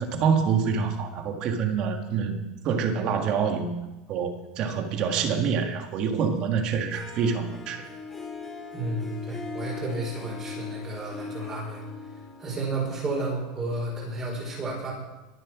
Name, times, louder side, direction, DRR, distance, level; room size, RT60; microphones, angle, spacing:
voice 1, 0.0-2.4 2.6-3.7 4.1-7.9, right 6 dB, 35° right, 5 dB, 1.7 m, -26 dB
Harp, 6.9-13.8, left 4 dB, 5° left, 2.2 m, -40 dB
voice 2, 8.7-11.8 12.4-14.9, right 2 dB, 20° right, -2 dB, 4.5 m, -32 dB
23.0 x 7.7 x 6.2 m, 1.1 s
supercardioid pair, 170°, 2 cm